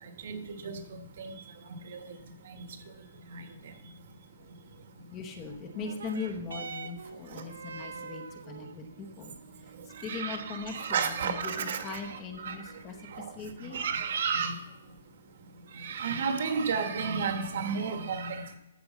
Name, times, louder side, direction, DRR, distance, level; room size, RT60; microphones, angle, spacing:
voice 1, 0.2-0.8 1.2-1.3 1.9-2.0 2.5-2.6 3.3-3.4 10.0-12.6 13.1-13.3 13.7-14.5 15.7-18.6, right 6 dB, 50° right, 7 dB, 1.5 m, -32 dB
voice 2, 5.1-9.3 9.6-9.7 10.0-13.8, left 5 dB, 15° left, 5 dB, 0.9 m, -40 dB
sound 1, 5.7-14.7 15.5-15.6, right 5 dB, 80° right, 0.8 m, -47 dB
13.5 x 5.3 x 7.2 m, 0.91 s
hypercardioid pair, 180°, 0 cm